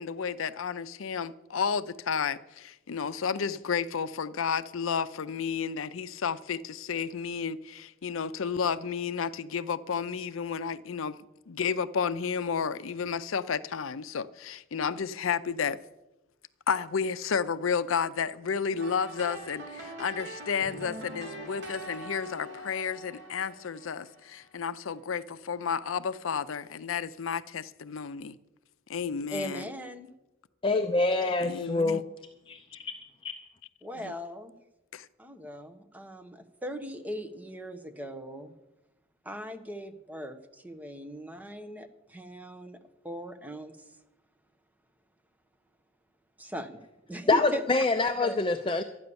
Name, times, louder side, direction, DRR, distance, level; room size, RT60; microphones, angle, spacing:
voice 1, 0.0-11.2 11.5-15.8 16.7-28.4 28.9-29.7 31.4-32.0 34.0-34.1 34.9-35.1, left 6 dB, 80° left, 0.5 m, -32 dB
sound 1, 18.8-24.7, right 1 dB, 55° right, 3.0 m, -43 dB
voice 2, 29.3-30.1 33.8-34.6 35.2-38.5 39.2-42.8 43.0-43.9 46.4-46.8 47.1-47.6 48.0-48.8, equal, 10° right, 0.9 m, -39 dB
voice 3, 30.6-32.0 32.5-32.9 33.2-33.3 47.3-48.8, left 3 dB, 25° left, 0.5 m, -26 dB
12.5 x 9.7 x 6.9 m
head